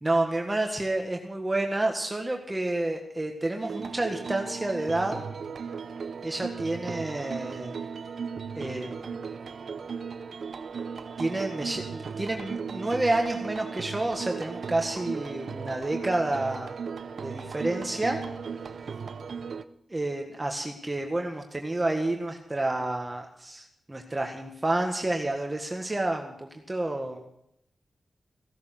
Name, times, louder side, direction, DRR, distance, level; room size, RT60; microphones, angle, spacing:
voice 1, 0.0-5.2 6.2-7.8 8.6-9.3 11.2-16.7 17.2-18.2 19.9-27.2, right 2 dB, 20° right, 2 dB, 1.7 m, -29 dB
sound 1, 3.6-19.6, right 6 dB, 70° right, 0.8 m, -37 dB
16.5 x 13.0 x 6.1 m, 0.75 s
wide cardioid pair, 110°, 0 cm